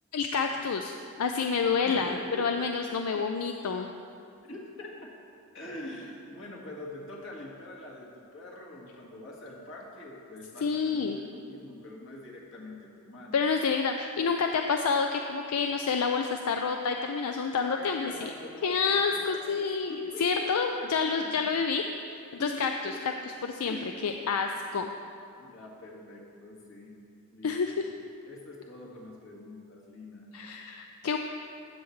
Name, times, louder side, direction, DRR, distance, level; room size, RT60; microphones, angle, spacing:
voice 1, 0.1-3.9 10.6-11.2 13.3-18.3 18.6-21.8 22.4-22.7 23.6-23.8 24.0-24.9 27.4-27.9 30.3-31.2, left 5 dB, 85° left, 4 dB, 0.4 m, -28 dB
voice 2, 1.5-2.7 3.1-3.4 4.4-4.9 5.5-13.4 17.6-21.1 22.4-23.2 23.6-24.0 25.4-26.9 27.3-27.8 28.3-30.3, left 1 dB, 60° left, -3 dB, 1.7 m, -44 dB
15.0 x 7.1 x 3.2 m, 2.4 s
head